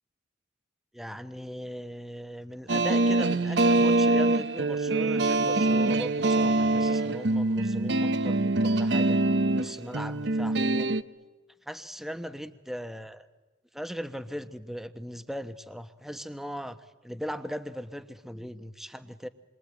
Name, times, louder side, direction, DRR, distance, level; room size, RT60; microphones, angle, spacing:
voice 1, 0.9-9.2 9.5-11.0 11.6-13.2 13.7-19.3, equal, ahead, 10 dB, 1.1 m, -39 dB
sound 1, 2.7-11.0, right 2 dB, 65° right, 1.0 m, -24 dB
28.5 x 23.0 x 9.0 m, 1.2 s
head